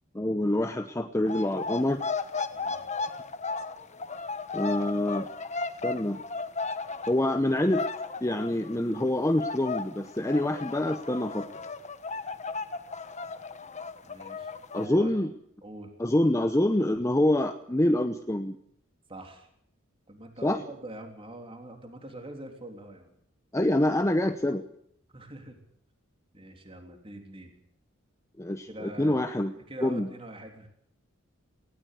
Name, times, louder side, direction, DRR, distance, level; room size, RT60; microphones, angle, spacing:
voice 1, 0.1-2.0 4.5-5.3 5.8-6.2 7.1-7.9 8.2-11.5 14.7-15.3 16.0-18.6 20.4-20.6 23.5-24.6 28.4-29.5 29.8-30.1, left 1 dB, 15° left, 7 dB, 0.8 m, -26 dB
sound 1, 1.2-9.1 9.4-14.9, left 4 dB, 35° left, 1.3 m, -35 dB
voice 2, 2.5-2.9 11.2-11.6 14.0-15.1 15.6-15.9 19.1-19.5 20.1-23.1 25.1-25.6 26.3-27.5 28.7-29.3 29.7-30.7, right 1 dB, 25° right, 4 dB, 3.5 m, -44 dB
18.5 x 17.5 x 8.3 m, 0.70 s
head